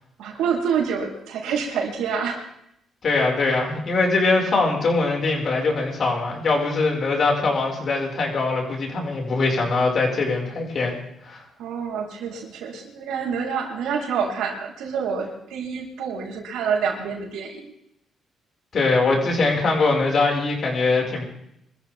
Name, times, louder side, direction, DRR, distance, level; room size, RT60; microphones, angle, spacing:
voice 1, 0.2-2.4 11.6-17.6, right 6 dB, 90° right, -1 dB, 4.6 m, -27 dB
voice 2, 3.0-10.9 11.2-11.4 18.7-21.2, left 3 dB, 50° left, 0 dB, 6.3 m, -22 dB
25.5 x 14.5 x 3.8 m, 0.79 s
cardioid pair, 90°, 0 cm